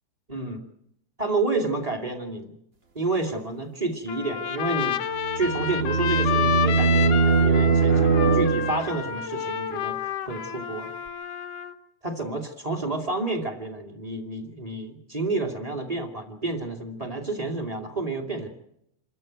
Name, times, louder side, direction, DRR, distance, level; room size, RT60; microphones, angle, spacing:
voice 1, 0.3-0.6 1.2-2.6 2.9-5.0 5.3-10.9 12.0-18.5, right 3 dB, 15° right, 6 dB, 2.4 m, -30 dB
Trumpet, 4.1-11.7, left 9 dB, 65° left, 2.0 m, -29 dB
sound 1, 5.2-9.1, right 5 dB, 50° right, 0.7 m, -21 dB
27.0 x 13.5 x 8.0 m, 0.76 s
omnidirectional pair, 3.3 m